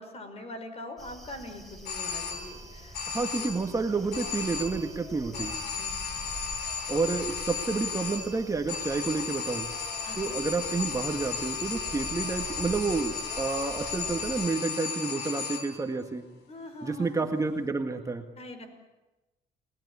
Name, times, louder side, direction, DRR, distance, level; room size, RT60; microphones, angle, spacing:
voice 1, 0.0-3.5 5.6-5.9 10.0-10.4 16.5-17.3 18.4-18.7, left 1 dB, 40° left, 8 dB, 5.6 m, -43 dB
sound 1, 1.0-14.5, right 1 dB, ahead, 6.9 m, -45 dB
sound 2, 1.9-2.7 2.9-3.8 4.1-5.0 5.3-15.9, left 6 dB, 75° left, 4.0 m, -35 dB
voice 2, 3.1-5.5 6.9-9.7 10.2-16.2 16.8-18.2, right 4 dB, 20° right, 4 dB, 1.7 m, -30 dB
30.0 x 19.5 x 9.8 m, 1.1 s
cardioid pair, 110°, 17 cm